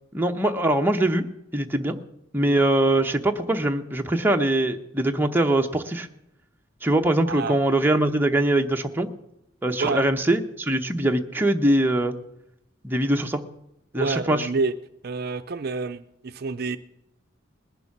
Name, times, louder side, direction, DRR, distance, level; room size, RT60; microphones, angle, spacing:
voice 1, 0.1-1.2 1.5-2.0 2.3-6.1 6.8-9.1 9.6-12.1 12.8-13.4 13.9-14.5, right 1 dB, 10° right, 4 dB, 0.7 m, -22 dB
voice 2, 7.3-7.6 9.8-10.0 14.0-14.7 15.0-16.8, right 4 dB, 50° right, 10 dB, 0.5 m, -28 dB
20.0 x 6.9 x 5.9 m, 0.85 s
head